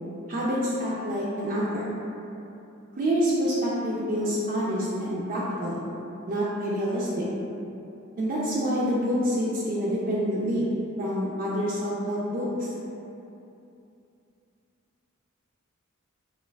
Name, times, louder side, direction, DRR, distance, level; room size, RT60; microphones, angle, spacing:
voice 1, 0.3-1.9 3.0-5.8 6.3-7.3 8.2-10.7 11.0-12.7, equal, 40° right, -6 dB, 0.3 m, -27 dB
3.2 x 2.3 x 2.2 m, 2.7 s
head